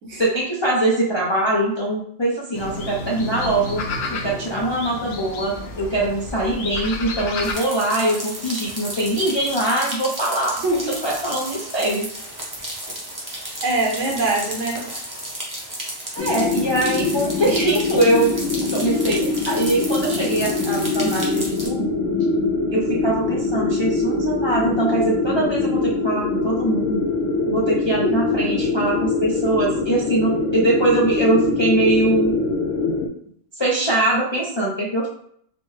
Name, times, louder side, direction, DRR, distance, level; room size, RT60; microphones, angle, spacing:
voice 1, 0.2-3.8 4.1-10.6 11.0-12.1 16.1-18.3 18.7-21.9 22.7-27.1 27.5-32.4 33.6-35.1, right 1 dB, 40° left, -5 dB, 0.4 m, -22 dB
sound 1, 2.5-7.6, left 3 dB, 65° left, 0.8 m, -31 dB
sound 2, 7.4-21.7, right 1 dB, 20° right, 0.7 m, -33 dB
voice 2, 10.6-11.0 13.6-14.8 28.0-28.2 28.5-28.6, right 2 dB, 75° right, -1 dB, 1.2 m, -23 dB
sound 3, 16.2-33.1, left 3 dB, 85° left, 1.0 m, -23 dB
4.1 x 2.0 x 3.1 m, 0.66 s
omnidirectional pair, 1.3 m